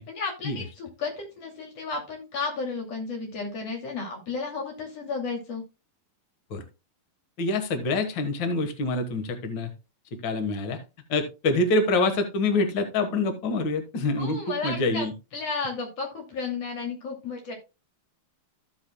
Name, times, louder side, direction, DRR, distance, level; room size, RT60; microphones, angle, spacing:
voice 1, 0.0-5.6 14.2-15.1 15.3-17.5, left 4 dB, 45° left, 1 dB, 3.4 m, -33 dB
voice 2, 7.4-9.7 10.2-10.8 11.1-15.1, left 2 dB, 75° left, 6 dB, 1.0 m, -26 dB
14.5 x 7.0 x 2.2 m, 0.27 s
omnidirectional pair, 4.4 m